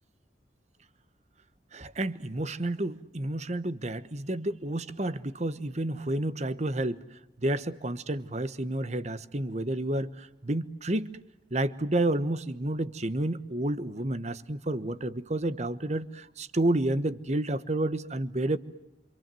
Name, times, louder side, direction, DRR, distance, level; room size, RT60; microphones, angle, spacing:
voice 1, 1.7-7.0 7.4-11.1 11.5-18.6, right 1 dB, 40° right, 14 dB, 1.2 m, -30 dB
29.0 x 26.5 x 7.7 m, 0.91 s
head